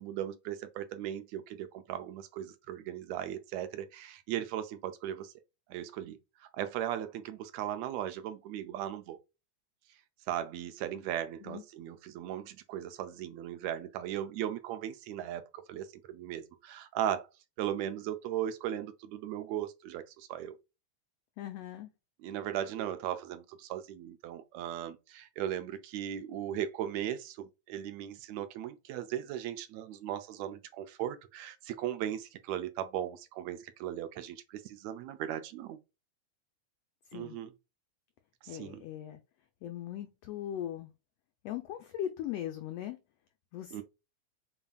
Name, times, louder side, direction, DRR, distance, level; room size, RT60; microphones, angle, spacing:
voice 1, 0.0-5.3 5.7-9.2 10.3-17.3 17.6-20.5 22.2-35.8 37.1-37.5 38.4-38.8 43.7-43.8, right 11 dB, 80° right, 1.6 m, -37 dB
voice 2, 21.4-21.9 37.1-37.4 38.5-39.2 39.6-40.9 41.4-43.0 43.5-43.8, left 11 dB, 85° left, 1.4 m, -39 dB
7.0 x 2.6 x 2.3 m
omnidirectional pair, 3.4 m